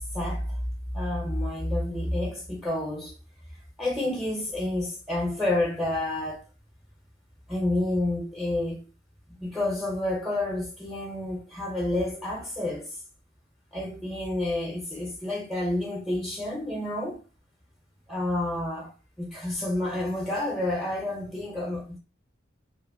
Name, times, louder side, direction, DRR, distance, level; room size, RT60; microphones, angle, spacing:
voice 1, 0.1-0.6 0.9-3.1 3.8-6.4 7.5-8.9 9.3-12.9 13.7-17.2 18.1-18.9 19.2-22.0, left 1 dB, ahead, 0.5 m, -29 dB
2.5 x 2.4 x 2.5 m
head